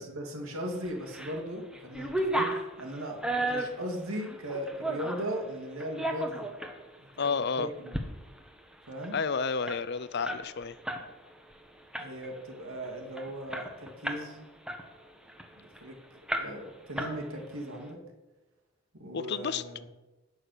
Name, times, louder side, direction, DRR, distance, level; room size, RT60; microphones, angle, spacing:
voice 1, 0.0-6.5 7.0-7.9 8.9-9.2 12.0-14.4 15.6-16.0 16.4-18.0 19.0-19.9, equal, 85° right, 2 dB, 2.7 m, -38 dB
sound 1, 0.8-1.4 1.7-5.3 5.8-6.8 7.2-7.3 7.7-8.1 8.4-8.5 8.7-11.1 11.4-11.6 11.9-12.4 12.8-12.9 13.2-14.3 14.7-15.8 16.3-16.7 17.0-17.6, right 1 dB, 5° right, 1.2 m, -34 dB
voice 2, 7.2-7.7 9.1-10.8 19.1-19.6, left 5 dB, 50° left, 14 dB, 0.6 m, -31 dB
12.0 x 6.4 x 9.6 m, 1.1 s
head